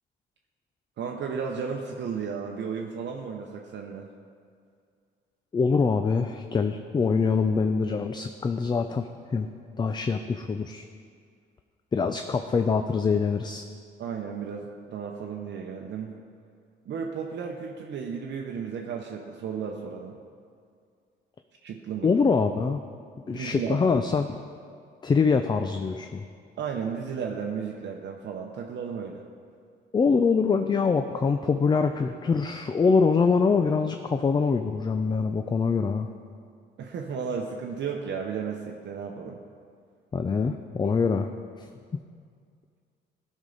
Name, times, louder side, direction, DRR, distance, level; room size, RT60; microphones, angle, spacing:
voice 1, 1.0-4.1 14.0-16.2 16.8-20.2 21.6-22.1 23.3-23.8 26.6-29.2 36.8-39.4, right 6 dB, 65° right, 0 dB, 0.8 m, -34 dB
voice 2, 5.5-9.5 9.8-10.9 11.9-13.7 22.0-22.8 23.3-24.4 25.0-26.2 29.9-36.1 40.1-41.3 41.6-41.7 41.9-42.0, left 5 dB, 25° left, 7 dB, 0.3 m, -24 dB
12.0 x 5.5 x 3.9 m, 2.2 s
cardioid pair, 90°, 20 cm